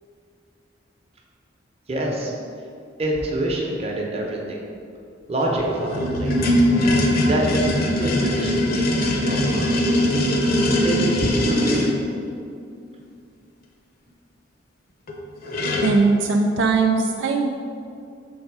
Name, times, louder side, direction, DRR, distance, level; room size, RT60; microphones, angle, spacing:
voice 1, 1.9-2.3 3.0-4.6 5.3-6.5 7.2-10.0 10.8-11.9, right 1 dB, 35° right, -1 dB, 0.9 m, -27 dB
sound 1, 5.4-11.9 15.1-15.2 15.4-16.0, equal, 55° left, 0.8 m, -21 dB
voice 2, 15.8-17.5, right 4 dB, 75° right, 1 dB, 0.4 m, -19 dB
6.3 x 3.6 x 4.8 m, 2.5 s
head